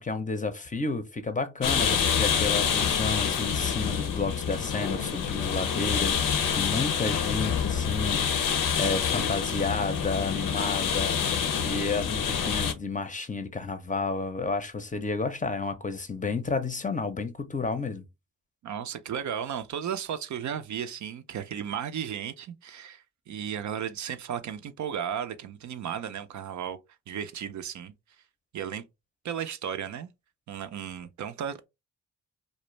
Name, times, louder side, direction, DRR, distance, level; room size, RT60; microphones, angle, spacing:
voice 1, 0.0-18.0, left 4 dB, 25° left, 0.6 m, -31 dB
sound 1, 1.6-12.7, left 7 dB, 70° left, 0.6 m, -27 dB
voice 2, 18.6-26.8 27.1-27.9 28.5-28.8 29.2-30.1 30.5-31.7, right 8 dB, 60° right, 0.4 m, -34 dB
2.4 x 2.0 x 3.0 m
supercardioid pair, 45°, 33 cm